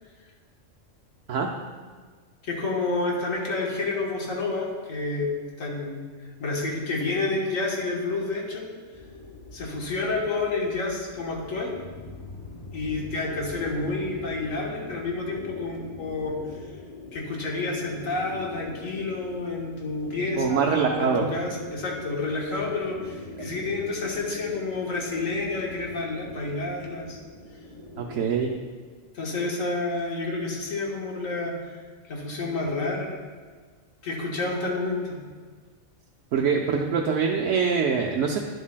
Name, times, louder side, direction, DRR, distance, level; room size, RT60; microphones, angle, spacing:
voice 1, 2.4-6.0 6.4-8.7 9.5-11.8 12.7-16.4 17.1-27.2 29.1-31.8 32.1-33.2 34.0-35.2, left 3 dB, 80° left, -1 dB, 1.6 m, -29 dB
sound 1, 8.9-28.6, left 2 dB, 35° left, 0.6 m, -42 dB
voice 2, 20.4-21.2 28.0-28.5 36.3-38.4, right 6 dB, 70° right, 0 dB, 0.9 m, -24 dB
10.0 x 7.2 x 2.2 m, 1.5 s
omnidirectional pair, 1.4 m